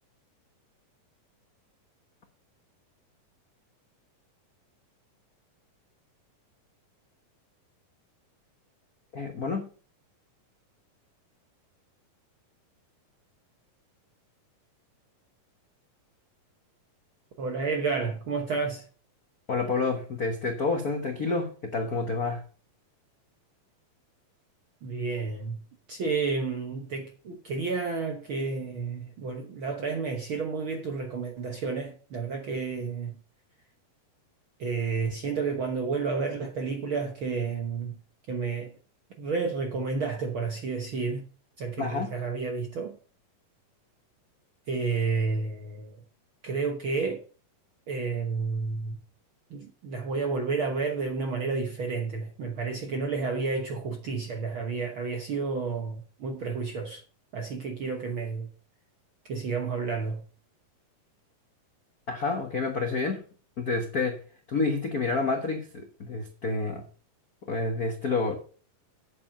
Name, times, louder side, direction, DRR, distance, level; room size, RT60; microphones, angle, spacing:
voice 1, 9.1-9.7 19.5-22.4 41.8-42.1 62.1-63.2 63.6-64.2 64.5-66.8 67.5-68.4, left 3 dB, 70° left, 0.8 m, -29 dB
voice 2, 17.4-18.9 24.8-25.6 25.9-33.2 34.6-38.0 38.3-38.7 39.2-41.3 41.6-43.0 44.7-46.0 46.4-47.2 47.9-49.0 49.5-57.0 57.3-58.5 59.3-60.2, right 4 dB, 65° right, 1.3 m, -31 dB
9.5 x 7.7 x 5.5 m
omnidirectional pair, 3.9 m